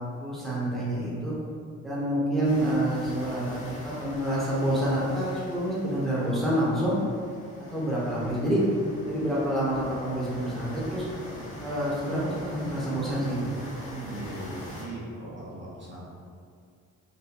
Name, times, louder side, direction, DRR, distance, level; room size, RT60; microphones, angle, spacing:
voice 1, 0.2-1.3 1.8-3.6 3.8-7.0 7.7-8.6 9.0-11.0 11.6-13.5, right 1 dB, ahead, -8 dB, 1.0 m, -27 dB
sound 1, 2.4-14.8, equal, 55° left, 1.3 m, -43 dB
voice 2, 13.9-16.1, right 1 dB, 40° right, -7 dB, 0.9 m, -39 dB
3.9 x 2.2 x 2.9 m, 2.2 s
cardioid pair, 90°, 30 cm